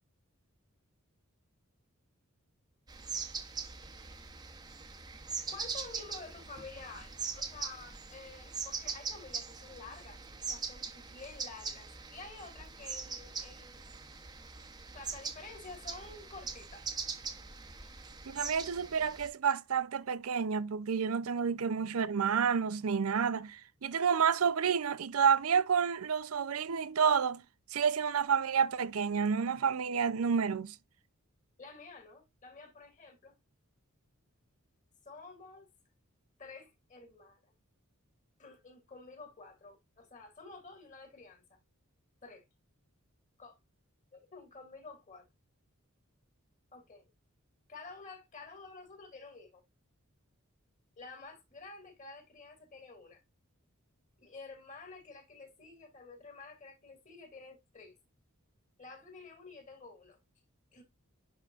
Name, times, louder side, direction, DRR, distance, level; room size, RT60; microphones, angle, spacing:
sound 1, 2.9-19.3, right 5 dB, 20° right, 0.9 m, -42 dB
voice 1, 5.5-10.2 10.5-13.9 14.9-16.9 31.6-33.3 35.0-35.7 36.4-37.5 38.4-41.6 42.2-42.4 43.4-43.6 44.1-45.3 46.7-47.1 47.7-49.6 51.0-53.2 54.2-57.9 58.8-60.2 60.7-60.8, left 3 dB, 35° left, 2.6 m, -50 dB
voice 2, 18.3-27.4 27.7-30.7, right 6 dB, 80° right, 0.6 m, -29 dB
11.0 x 3.8 x 2.5 m
head